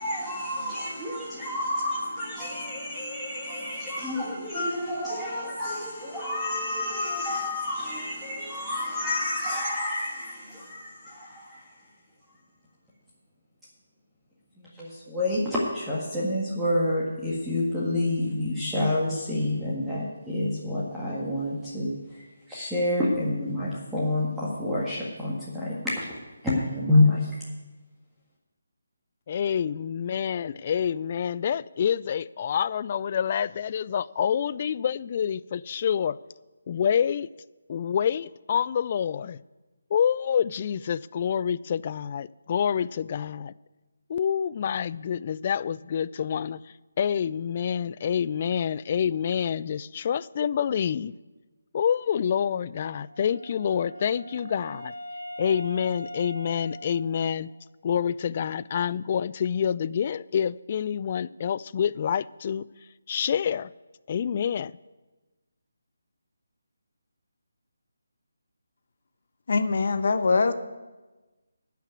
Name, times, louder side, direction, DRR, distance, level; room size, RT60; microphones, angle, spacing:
voice 1, 0.0-11.8 14.6-26.0 26.4-27.4, left 1 dB, 5° right, 1.8 m, -28 dB
voice 2, 29.3-36.2 36.7-37.3 37.7-39.4 39.9-43.5 44.1-46.6 47.0-51.1 51.7-54.9 55.4-57.5 57.8-62.7 63.1-63.7 64.1-64.7, left 8 dB, 35° left, 0.3 m, -27 dB
Wind instrument woodwind instrument, 52.8-57.6, equal, 90° right, 1.8 m, -41 dB
voice 3, 69.5-70.5, left 4 dB, 55° left, 1.0 m, -23 dB
12.5 x 5.8 x 9.3 m
figure-of-eight pair, 150°, 0 cm